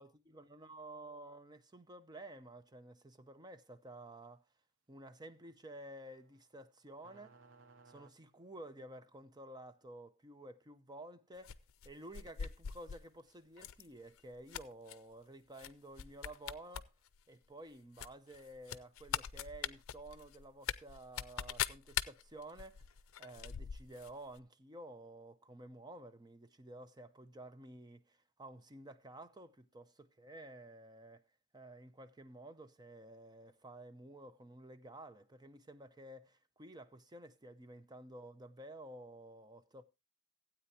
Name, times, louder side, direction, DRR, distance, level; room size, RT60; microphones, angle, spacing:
voice 1, 0.0-4.4 4.9-7.3 7.9-11.6 11.8-16.9 17.3-22.8 23.2-31.2 31.5-39.8, right 1 dB, 20° right, 0.7 m, -52 dB
sound 1, 5.9-8.7, right 4 dB, 65° right, 0.8 m, -62 dB
sound 2, 11.4-13.0 13.6-13.8 14.2-15.0 15.6-15.7 16.0-16.8 17.1-17.2 18.0-24.1 24.4-24.5, left 9 dB, 85° left, 0.5 m, -41 dB
16.0 x 8.8 x 2.8 m
head